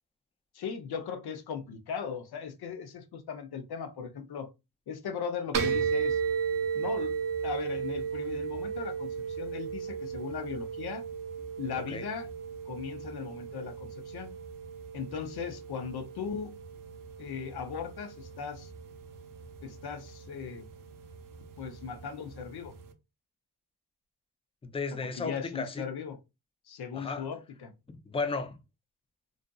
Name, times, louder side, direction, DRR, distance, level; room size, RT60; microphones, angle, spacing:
voice 1, 0.5-4.5 4.9-6.2 6.7-7.1 7.4-11.0 11.6-12.3 12.7-14.4 14.9-16.5 17.2-18.7 19.6-20.7 21.6-22.7 25.0-26.2 26.7-27.7, left 6 dB, 85° left, 0.6 m, -38 dB
sound 1, 5.5-22.9, right 7 dB, 60° right, 0.6 m, -36 dB
voice 2, 24.6-25.8 26.9-27.3 27.9-28.6, left 4 dB, 15° left, 0.4 m, -34 dB
2.6 x 2.4 x 2.2 m
cardioid pair, 80°, 38 cm